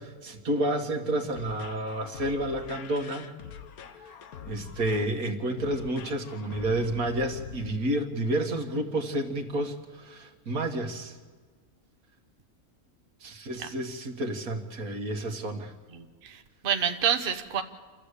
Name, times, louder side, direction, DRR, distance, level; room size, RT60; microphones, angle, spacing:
voice 1, 0.0-3.3 4.5-11.2 13.2-15.7, right 1 dB, 80° right, 4 dB, 2.2 m, -30 dB
sound 1, 1.3-7.8, left 8 dB, 85° left, 1.5 m, -44 dB
voice 2, 15.9-17.6, right 8 dB, 40° right, 7 dB, 1.1 m, -28 dB
28.0 x 13.0 x 8.3 m, 1.5 s
omnidirectional pair, 1.5 m